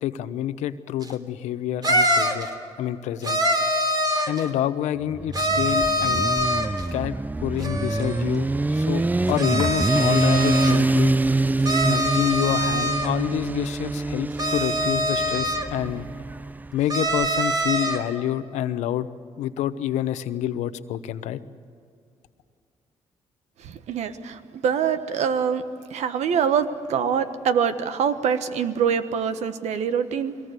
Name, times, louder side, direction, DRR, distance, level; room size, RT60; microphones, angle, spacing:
voice 1, 0.0-2.5 2.8-3.5 4.3-6.3 6.9-9.0 9.3-11.1 11.8-16.0 16.7-19.1 19.4-21.4, left 11 dB, 90° left, 12 dB, 0.9 m, -27 dB
sound 1, 1.0-1.1 1.8-2.5 3.2-4.4 5.3-6.8 7.6-8.2 9.3-10.8 11.6-13.1 14.4-15.7 16.9-18.0, equal, 35° right, 3.3 m, -24 dB
Motorcycle, 5.1-16.8, right 2 dB, 15° right, 0.5 m, -25 dB
voice 2, 23.6-25.6 25.9-30.3, right 7 dB, 80° right, 10 dB, 1.3 m, -24 dB
23.0 x 18.5 x 8.2 m, 2.4 s
cardioid pair, 75°, 12 cm